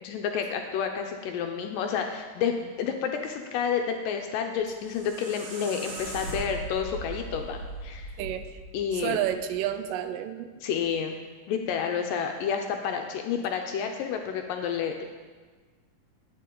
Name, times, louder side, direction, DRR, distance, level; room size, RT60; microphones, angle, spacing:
voice 1, 0.0-8.1 8.7-9.2 10.6-11.2 11.5-15.0, left 7 dB, 80° left, 4 dB, 2.2 m, -30 dB
sound 1, 4.6-9.7, right 2 dB, 55° right, 3.4 m, -39 dB
voice 2, 8.2-8.5 8.9-10.6, right 11 dB, 80° right, 9 dB, 2.2 m, -30 dB
11.0 x 9.2 x 3.8 m, 1.4 s
omnidirectional pair, 4.0 m